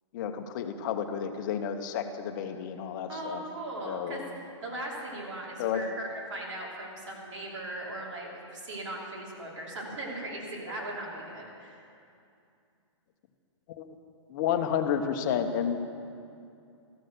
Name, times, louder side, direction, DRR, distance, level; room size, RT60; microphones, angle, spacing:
voice 1, 0.1-3.4 3.8-4.2 5.6-5.8 13.8-13.9 14.3-15.8, left 8 dB, 40° left, 7 dB, 0.8 m, -31 dB
voice 2, 3.1-11.8, right 1 dB, 75° right, -3 dB, 3.0 m, -38 dB
13.0 x 6.5 x 6.5 m, 2.5 s
hypercardioid pair, 145°, 16 cm